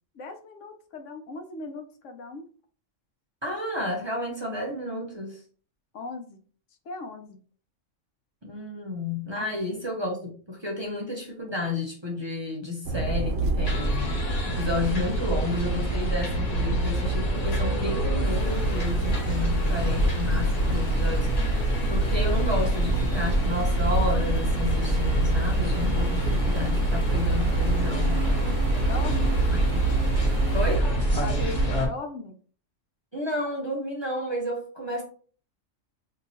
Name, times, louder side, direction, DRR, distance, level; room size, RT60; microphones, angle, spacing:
voice 1, 0.1-2.5 5.9-6.4 6.9-7.4 9.4-9.5 19.2-19.9 25.7-26.3 28.7-29.5 31.2-32.4, left 4 dB, 80° left, 5 dB, 1.0 m, -39 dB
voice 2, 3.4-5.4 8.4-14.2 14.4-21.5 21.9-28.2 29.5-29.9 30.5-30.9 33.1-35.0, left 2 dB, 25° right, -2 dB, 0.7 m, -31 dB
sound 1, 12.8-31.9, right 3 dB, 80° right, 0.9 m, -28 dB
sound 2, 13.6-31.9, equal, 40° left, 0.7 m, -27 dB
sound 3, 18.2-30.8, left 2 dB, 60° left, 1.1 m, -47 dB
2.9 x 2.3 x 4.1 m, 0.43 s
omnidirectional pair, 1.3 m